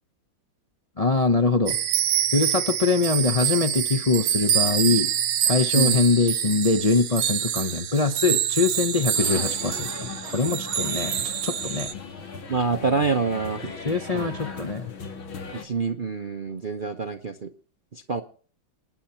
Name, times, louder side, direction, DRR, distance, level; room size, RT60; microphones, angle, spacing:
voice 1, 1.0-1.8 2.3-5.1 5.5-11.9 13.8-14.9, left 4 dB, 55° left, 6 dB, 0.4 m, -23 dB
sound 1, 1.7-11.9, right 9 dB, 90° right, 2.0 m, -26 dB
sound 2, 9.1-15.6, left 5 dB, 75° left, 2.9 m, -38 dB
voice 2, 12.5-13.7 14.1-14.4 15.5-17.5 17.9-18.2, right 4 dB, 50° right, 6 dB, 0.6 m, -26 dB
27.5 x 10.0 x 4.4 m, 0.43 s
omnidirectional pair, 2.2 m